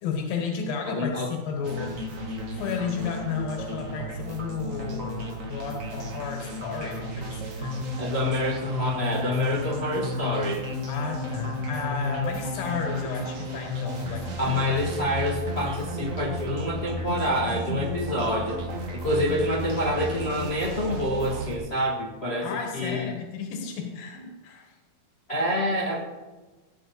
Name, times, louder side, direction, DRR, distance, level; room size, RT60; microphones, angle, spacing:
voice 1, 0.0-2.0 2.5-7.7 10.9-14.8 22.4-24.8, left 5 dB, 85° left, 2 dB, 3.1 m, -33 dB
voice 2, 0.8-1.3 8.0-10.6 14.4-18.6 18.9-23.1 25.3-26.0, left 1 dB, 55° left, -3 dB, 0.7 m, -27 dB
sound 1, 1.6-21.6, left 1 dB, 90° right, 0.7 m, -33 dB
17.5 x 8.9 x 4.1 m, 1.2 s
omnidirectional pair, 4.0 m